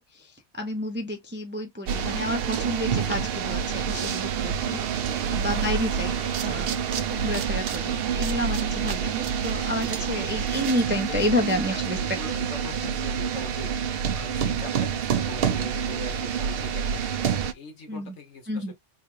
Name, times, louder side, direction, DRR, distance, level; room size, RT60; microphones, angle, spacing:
voice 1, 0.0-4.8 5.1-6.8 7.1-12.0 17.9-18.1 18.5-18.7, left 1 dB, 15° right, 0.4 m, -30 dB
sound 1, 1.9-17.5, right 7 dB, 65° right, 0.7 m, -27 dB
voice 2, 5.1-5.4 9.8-10.2 11.1-13.7 14.1-18.7, left 3 dB, 75° left, 1.5 m, -42 dB
3.9 x 2.4 x 3.1 m
omnidirectional pair, 1.2 m